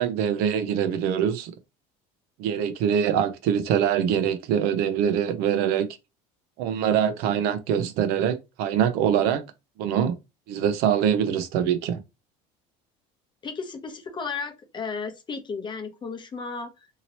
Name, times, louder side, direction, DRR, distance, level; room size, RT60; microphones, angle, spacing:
voice 1, 0.0-1.5 2.4-5.9 6.6-9.4 9.8-10.2 10.5-12.0, right 8 dB, 70° right, 0.6 m, -24 dB
voice 2, 13.4-16.9, left 5 dB, 25° left, 0.7 m, -34 dB
2.8 x 2.8 x 2.8 m
cardioid pair, 115°, 17 cm